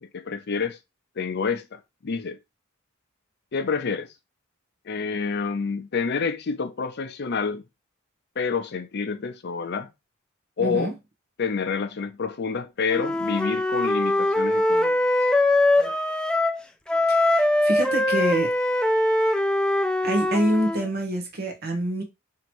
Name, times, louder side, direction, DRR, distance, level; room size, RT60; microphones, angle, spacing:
voice 1, 0.1-0.8 1.2-2.4 3.5-4.1 4.9-7.6 8.4-9.9 10.6-10.9 11.4-15.0 15.8-16.0, left 5 dB, 55° left, 0.5 m, -28 dB
voice 2, 10.6-10.9 17.1-18.5 20.0-22.0, right 1 dB, 50° right, 1.0 m, -26 dB
Wind instrument woodwind instrument, 12.9-16.6 16.9-20.9, left 1 dB, 5° left, 0.3 m, -22 dB
3.0 x 2.8 x 4.4 m
head